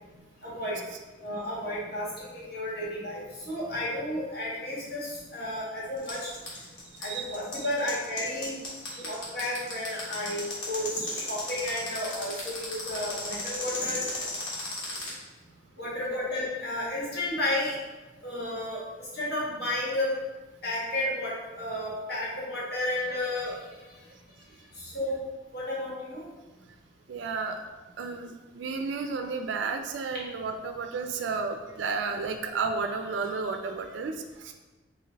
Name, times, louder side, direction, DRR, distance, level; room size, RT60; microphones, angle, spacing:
voice 1, 0.4-0.8 1.2-6.3 7.0-8.6 9.0-14.0 15.8-17.7 18.2-18.8 19.1-20.1 20.6-23.6 24.8-25.2 25.5-26.2, left 1 dB, 60° left, -7 dB, 1.5 m, -32 dB
sound 1, 6.0-15.1, left 3 dB, 80° left, 1.4 m, -35 dB
voice 2, 6.9-7.7 8.9-9.1 15.8-15.9 24.1-24.2 27.1-27.6 28.0-34.5, right 4 dB, 75° right, 6 dB, 0.4 m, -33 dB
4.7 x 2.5 x 3.4 m, 1.2 s
head